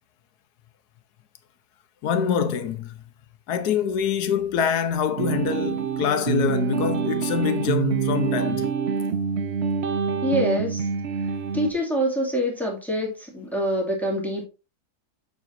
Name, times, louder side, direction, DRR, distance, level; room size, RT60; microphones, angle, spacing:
voice 1, 2.0-3.0 3.5-8.7, left 8 dB, 85° left, 1.4 m, -25 dB
sound 1, 5.2-11.7, right 6 dB, 55° right, 0.8 m, -26 dB
voice 2, 10.2-10.9 11.5-14.5, equal, ahead, 2.3 m, -25 dB
7.2 x 6.9 x 2.6 m
omnidirectional pair, 1.6 m